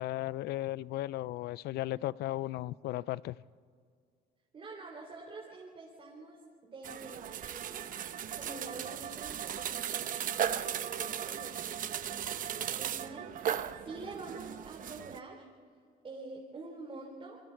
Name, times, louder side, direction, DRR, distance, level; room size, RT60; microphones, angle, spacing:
voice 1, 0.0-3.4, left 15 dB, 75° left, 0.5 m, -35 dB
voice 2, 4.5-7.9 8.3-15.5 16.0-17.4, right 3 dB, 35° right, 3.6 m, -47 dB
sound 1, 6.8-15.2, right 9 dB, 55° right, 0.9 m, -37 dB
28.0 x 22.0 x 4.6 m
cardioid pair, 110°, 17 cm